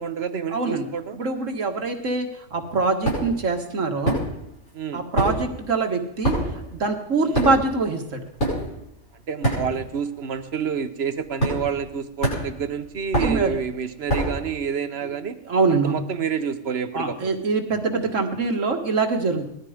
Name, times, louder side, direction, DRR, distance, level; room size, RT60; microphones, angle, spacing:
voice 1, 0.0-1.2 4.7-5.1 7.2-7.4 9.3-15.4 15.7-17.4, right 7 dB, 55° right, 10 dB, 1.2 m, -28 dB
voice 2, 0.5-0.9 1.1-4.2 4.9-6.4 6.7-8.2 13.2-13.5 15.5-16.0 16.9-19.5, right 3 dB, 75° right, 4 dB, 2.1 m, -24 dB
sound 1, 3.0-3.4 4.0-4.7 4.9-10.1 10.3-10.6 11.4-11.9 12.2-14.5, right 1 dB, 65° left, 8.6 m, -26 dB
19.0 x 13.0 x 5.1 m, 0.83 s
omnidirectional pair, 1.3 m